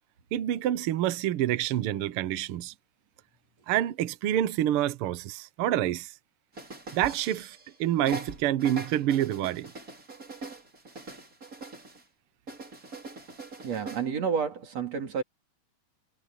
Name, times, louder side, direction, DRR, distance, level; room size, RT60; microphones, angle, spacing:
voice 1, 0.3-2.7 3.7-6.1 6.9-9.7, right 12 dB, 80° right, 1.2 m, -27 dB
sound 1, 6.5-7.7 8.1-12.0 12.5-14.1, right 2 dB, 25° right, 4.8 m, -42 dB
voice 2, 13.6-15.2, right 6 dB, 55° right, 4.3 m, -30 dB
omnidirectional pair, 3.7 m